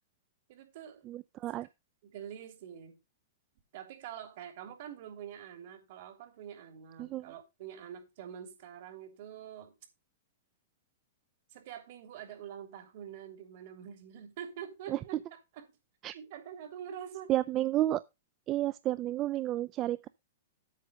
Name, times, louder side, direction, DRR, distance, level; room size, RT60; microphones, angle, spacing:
voice 1, 0.5-1.0 2.0-3.0 3.7-9.7 11.5-15.7 16.1-17.3, right 9 dB, 55° right, 3.1 m, -46 dB
voice 2, 1.0-1.7 7.0-7.3 14.9-15.0 16.0-16.2 17.3-18.0 18.5-20.1, right 14 dB, 30° right, 0.4 m, -31 dB
8.3 x 6.5 x 5.1 m
hypercardioid pair, 140°, 0 cm